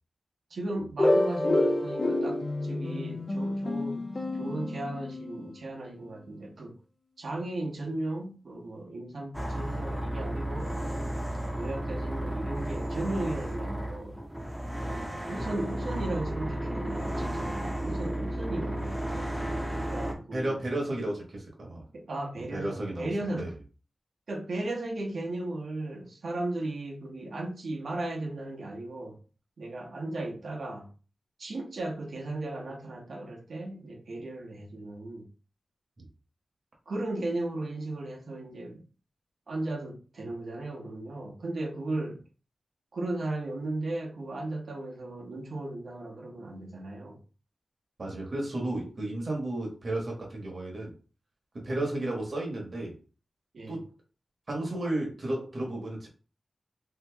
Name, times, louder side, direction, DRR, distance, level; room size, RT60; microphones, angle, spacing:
voice 1, 0.5-4.0 4.3-6.7 7.2-10.8 11.6-14.2 14.9-19.3 19.8-20.6 21.9-23.5 24.3-29.2 29.6-30.9 31.4-35.3 36.9-38.8 39.5-42.2 42.9-47.2 53.5-53.8, right 2 dB, 75° right, 0.9 m, -36 dB
sound 1, 1.0-5.6, left 1 dB, 45° left, 0.5 m, -28 dB
sound 2, 9.3-20.1, right 1 dB, ahead, 0.7 m, -33 dB
voice 2, 20.3-21.8 22.5-23.1 23.3-23.5 36.0-36.1 48.0-50.9 51.5-53.0 53.7-53.9 54.5-56.1, right 1 dB, 55° right, 1.1 m, -33 dB
2.8 x 2.6 x 3.4 m
wide cardioid pair, 80°, 0 cm